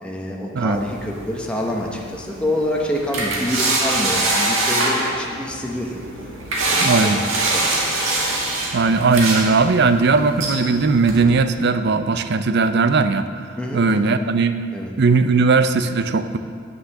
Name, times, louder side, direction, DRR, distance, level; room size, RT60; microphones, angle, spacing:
voice 1, 0.0-6.0 6.7-7.8 13.6-14.1 14.7-14.9, left 1 dB, 5° left, -1 dB, 0.9 m, -27 dB
sound 1, 0.7-11.2, right 2 dB, 75° right, 1.8 m, -24 dB
voice 2, 6.8-7.2 8.7-14.5 15.0-16.4, right 4 dB, 55° right, 10 dB, 0.5 m, -18 dB
9.2 x 7.1 x 6.5 m, 2.2 s
head